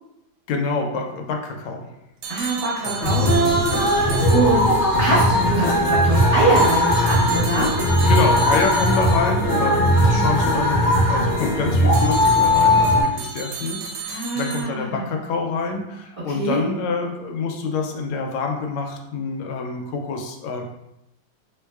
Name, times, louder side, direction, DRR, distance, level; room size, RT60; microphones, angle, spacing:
voice 1, 0.5-1.9 2.8-3.3 4.1-4.2 5.8-6.0 8.1-20.6, left 4 dB, 85° left, 3 dB, 1.4 m, -27 dB
sound 1, 2.2-5.0 6.6-9.5 11.9-14.6, right 5 dB, 75° right, 1.2 m, -33 dB
voice 2, 2.3-3.3 4.0-7.8 14.0-15.0 16.2-16.7, right 2 dB, 30° right, -11 dB, 1.2 m, -23 dB
sound 2, 3.0-13.0, left 1 dB, 55° left, 0.9 m, -18 dB
3.7 x 3.1 x 2.3 m, 0.87 s
omnidirectional pair, 2.2 m